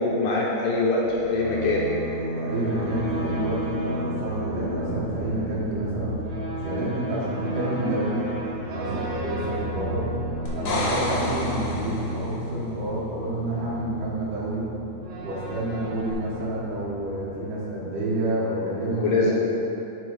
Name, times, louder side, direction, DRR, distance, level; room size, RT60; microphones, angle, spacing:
voice 1, 0.0-1.8 18.8-19.3, left 3 dB, 75° left, -4 dB, 2.1 m, -23 dB
sound 1, 1.0-17.7, right 1 dB, 65° right, 1.8 m, -33 dB
voice 2, 2.4-6.2 6.5-8.3 8.6-10.1 10.5-14.7 15.2-19.3, right 1 dB, 85° right, -7 dB, 3.5 m, -29 dB
sound 2, 10.5-12.4 16.1-16.2, left 2 dB, 90° left, 1.2 m, -29 dB
10.0 x 3.8 x 4.7 m, 2.9 s
omnidirectional pair, 4.2 m